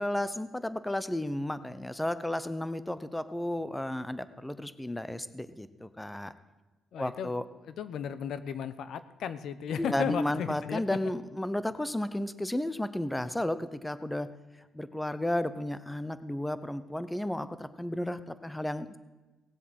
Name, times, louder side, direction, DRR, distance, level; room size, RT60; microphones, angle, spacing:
voice 1, 0.0-6.3 7.0-7.4 9.8-14.3 14.7-19.0, left 1 dB, 5° left, 13 dB, 0.8 m, -33 dB
voice 2, 6.9-7.3 7.6-10.8, left 8 dB, 70° left, 13 dB, 0.9 m, -35 dB
18.0 x 7.9 x 7.8 m, 1.2 s
cardioid pair, 90°, 0 cm